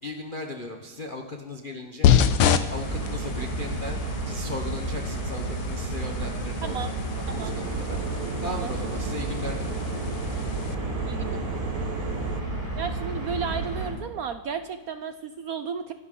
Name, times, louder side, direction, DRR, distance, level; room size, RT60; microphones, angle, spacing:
voice 1, 0.0-2.1 2.7-8.0 8.4-9.8, left 2 dB, 35° left, 3 dB, 0.8 m, -37 dB
sound 1, 2.0-10.7, left 8 dB, 80° left, 1.6 m, -28 dB
sound 2, 2.7-13.9, right 2 dB, 20° right, 3.2 m, -31 dB
sound 3, 7.3-12.4, right 6 dB, 50° right, 1.2 m, -36 dB
voice 2, 11.0-11.4 12.8-15.9, right 7 dB, 75° right, 9 dB, 0.8 m, -33 dB
25.5 x 11.5 x 3.8 m, 1.3 s
omnidirectional pair, 2.3 m